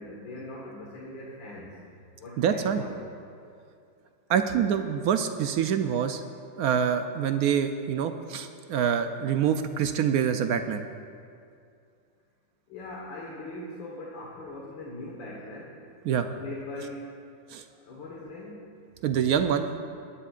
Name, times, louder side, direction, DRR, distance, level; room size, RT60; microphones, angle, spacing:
voice 1, 0.0-1.8 2.2-3.0 4.3-4.7 12.7-15.7 16.1-17.1 17.7-18.6, left 2 dB, 85° left, -4 dB, 2.2 m, -41 dB
voice 2, 2.4-2.8 4.3-6.2 6.6-10.8 16.0-16.3 17.5-17.6 19.0-19.7, right 8 dB, 75° right, 8 dB, 0.9 m, -26 dB
20.0 x 11.5 x 2.5 m, 2.4 s
omnidirectional pair, 2.0 m